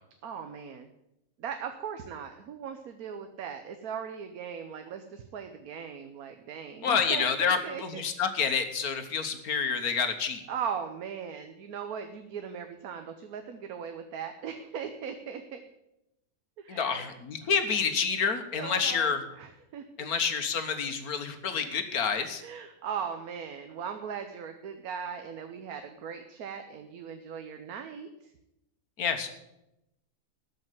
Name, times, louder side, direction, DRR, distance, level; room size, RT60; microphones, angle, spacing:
voice 1, 0.2-0.9 1.4-8.0 10.5-15.6 16.6-17.1 18.5-20.1 22.4-28.1, right 7 dB, 75° right, 7 dB, 1.3 m, -39 dB
voice 2, 6.8-10.4 16.7-19.2 20.0-22.4 29.0-29.3, left 6 dB, 75° left, 8 dB, 1.6 m, -28 dB
13.0 x 5.5 x 9.1 m, 0.88 s
omnidirectional pair, 1.6 m